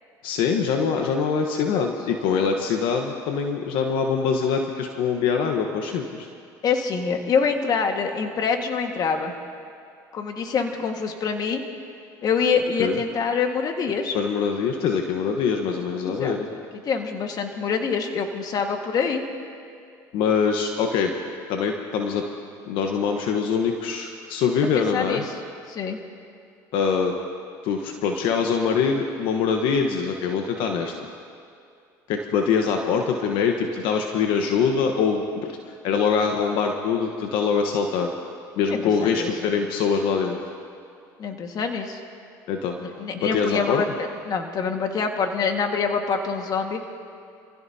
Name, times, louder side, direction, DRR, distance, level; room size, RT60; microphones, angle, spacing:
voice 1, 0.2-6.3 12.8-13.0 14.1-16.5 20.1-21.1 21.5-22.2 22.6-25.2 26.7-27.1 27.6-30.9 32.1-35.6 35.8-38.1 38.5-40.4 42.5-42.8 43.1-43.8, left 6 dB, 70° left, 3 dB, 1.2 m, -23 dB
voice 2, 6.6-9.3 10.1-11.6 12.2-14.2 16.1-16.4 16.8-19.2 24.7-25.2 25.7-26.0 38.7-39.5 41.2-42.0 42.8-43.9 44.3-46.9, left 5 dB, 50° left, 4 dB, 1.7 m, -25 dB
27.5 x 16.0 x 2.8 m, 2.4 s
supercardioid pair, 85°, 9 cm